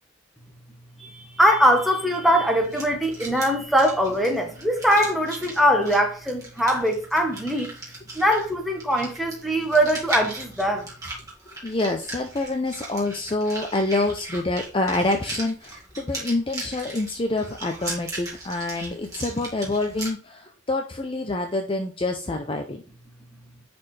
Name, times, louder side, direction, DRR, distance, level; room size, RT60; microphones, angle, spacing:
voice 1, 1.0-7.7 8.1-10.9, equal, ahead, 1.3 m, -21 dB
sound 1, 2.6-20.1, right 2 dB, 15° right, 2.1 m, -38 dB
voice 2, 11.6-22.8, left 2 dB, 25° left, 0.6 m, -27 dB
9.9 x 4.3 x 3.3 m
head